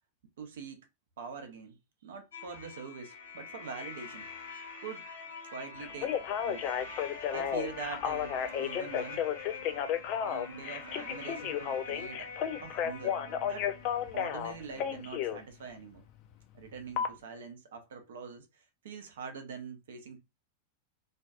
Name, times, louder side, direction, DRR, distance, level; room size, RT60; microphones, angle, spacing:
voice 1, 0.4-0.8 1.2-1.8 2.0-4.3 4.8-5.1 5.5-6.2 6.4-6.7 7.3-9.2 10.2-12.3 12.6-13.7 14.1-16.0 16.5-20.2, right 6 dB, 60° right, 0.5 m, -44 dB
sound 1, 2.3-15.0, left 4 dB, 65° left, 0.8 m, -45 dB
Telephone, 5.8-15.4 17.0-17.1, left 9 dB, 40° left, 0.3 m, -33 dB
2.5 x 2.2 x 2.3 m
figure-of-eight pair, 90°, 0 cm